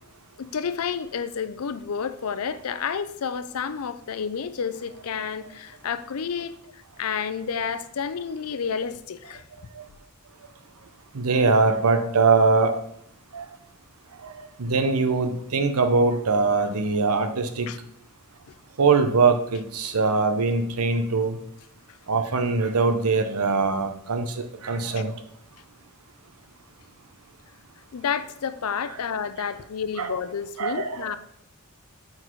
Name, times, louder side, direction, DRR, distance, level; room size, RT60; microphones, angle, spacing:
voice 1, 0.4-9.4 17.7-17.8 27.9-31.2, left 6 dB, 80° left, 0.5 m, -30 dB
voice 2, 11.1-12.7 13.3-13.5 14.6-17.7 18.8-21.4 22.1-25.1 30.0-30.1 30.6-31.1, right 4 dB, 85° right, 0.7 m, -22 dB
8.0 x 4.0 x 4.5 m
head